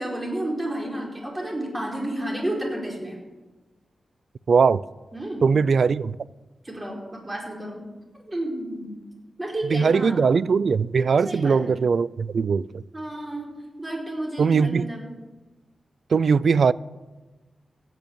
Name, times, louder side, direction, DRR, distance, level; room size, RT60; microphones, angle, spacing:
voice 1, 0.0-3.1 5.1-5.5 6.6-7.8 8.2-8.9 9.4-10.2 11.2-11.7 12.9-13.5 13.8-15.1, right 1 dB, 20° right, 4.6 m, -31 dB
voice 2, 4.5-4.8 5.4-6.2 9.7-12.8 14.4-14.9 16.1-16.7, right 5 dB, 65° right, 0.4 m, -20 dB
15.5 x 9.4 x 8.8 m
wide cardioid pair, 100°, 0 cm